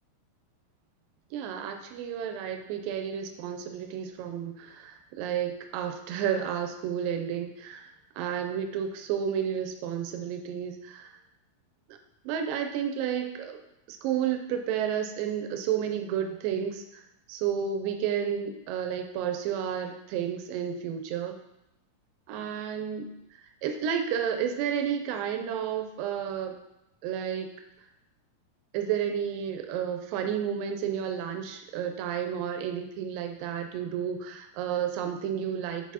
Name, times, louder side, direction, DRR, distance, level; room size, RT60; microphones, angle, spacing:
voice 1, 1.3-7.9 8.2-11.2 12.2-13.6 13.9-17.0 17.3-21.4 22.3-26.6 27.0-27.5 28.7-35.9, right 8 dB, 85° right, 5 dB, 2.3 m, -31 dB
8.1 x 4.4 x 2.8 m, 0.83 s
omnidirectional pair, 4.0 m